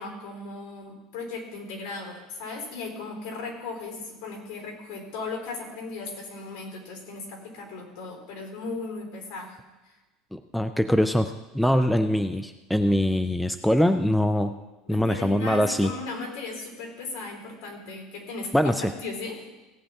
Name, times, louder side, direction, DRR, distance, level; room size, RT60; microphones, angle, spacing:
voice 1, 0.0-9.6 9.8-9.9 14.9-18.7 19.0-19.4, left 3 dB, 60° left, 1 dB, 4.1 m, -37 dB
voice 2, 10.3-14.5 14.9-15.9 18.5-18.9, equal, ahead, 8 dB, 0.3 m, -23 dB
17.5 x 9.6 x 3.6 m, 1.1 s
cardioid pair, 165°, 0 cm